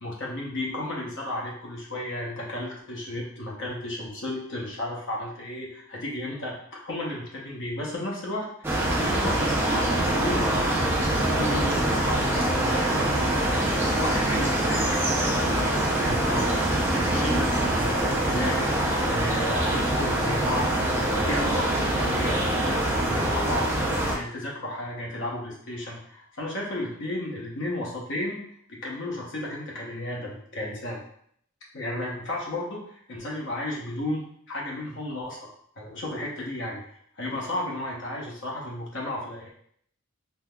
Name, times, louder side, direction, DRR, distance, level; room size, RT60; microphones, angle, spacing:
voice 1, 0.0-10.9 11.3-28.4 28.7-31.0 31.7-35.5 35.8-36.8 37.2-39.5, left 1 dB, 55° left, -3 dB, 0.8 m, -33 dB
sound 1, 8.6-24.2, right 1 dB, 10° right, 0.4 m, -24 dB
3.5 x 2.7 x 2.2 m, 0.66 s
head